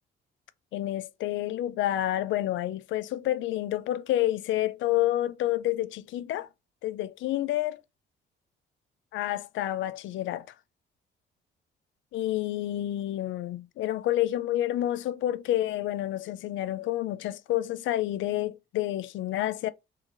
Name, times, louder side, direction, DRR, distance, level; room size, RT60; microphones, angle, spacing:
voice 1, 0.7-6.5 6.8-7.8 9.1-10.5 12.1-19.7, left 14 dB, 75° left, 0.4 m, -29 dB
3.1 x 2.3 x 3.7 m
cardioid pair, 90°, 20 cm